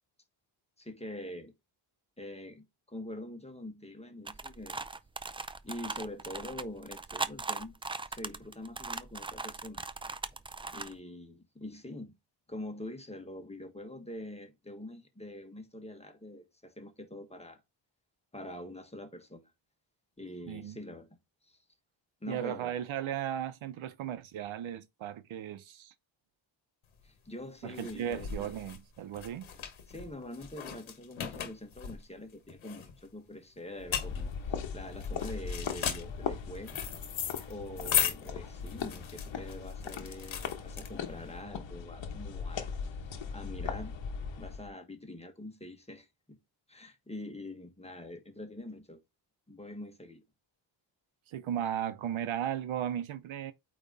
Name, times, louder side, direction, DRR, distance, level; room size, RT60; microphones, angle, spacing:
voice 1, 0.8-1.5 2.2-4.8 5.6-7.7 8.1-9.9 10.7-12.1 12.5-17.6 18.3-19.4 20.2-21.1 21.5-21.6 22.2-22.8 27.0-28.5 29.9-36.8 37.5-42.7 43.3-43.9 44.4-46.4 46.7-49.0 49.5-50.2, left 1 dB, 15° left, 1.5 m, -44 dB
sound 1, 4.3-10.9, right 3 dB, 15° right, 0.3 m, -39 dB
voice 2, 20.5-20.8 22.3-25.9 27.6-29.5 51.3-53.5, right 10 dB, 90° right, 0.9 m, -36 dB
sound 2, 26.9-41.3, left 8 dB, 90° left, 1.6 m, -37 dB
sound 3, 33.8-44.7, left 6 dB, 70° left, 1.3 m, -39 dB
8.7 x 3.1 x 4.0 m
cardioid pair, 110°, 46 cm